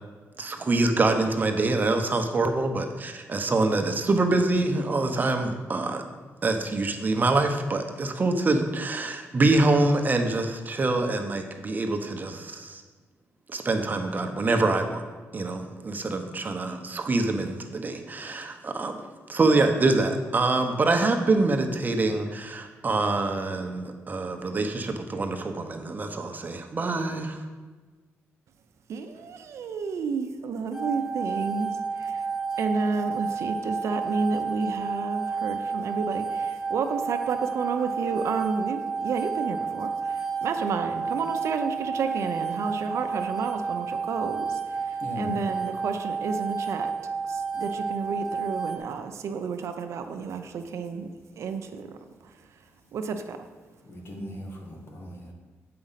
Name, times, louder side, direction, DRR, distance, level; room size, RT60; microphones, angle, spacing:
voice 1, 0.4-6.1 6.4-12.8 13.5-15.0 15.3-19.0 19.3-27.4, right 2 dB, 35° right, 5 dB, 0.9 m, -25 dB
voice 2, 28.9-32.3 32.6-46.9 47.2-51.1 51.4-51.9 52.2-52.6 52.9-53.4, right 5 dB, 75° right, 7 dB, 0.6 m, -31 dB
sound 1, 30.7-48.8, right 5 dB, ahead, 1.5 m, -31 dB
voice 3, 45.0-45.6 53.8-55.3, equal, 50° left, 1 dB, 1.7 m, -37 dB
7.7 x 5.1 x 5.7 m, 1.4 s
cardioid pair, 85°, 5 cm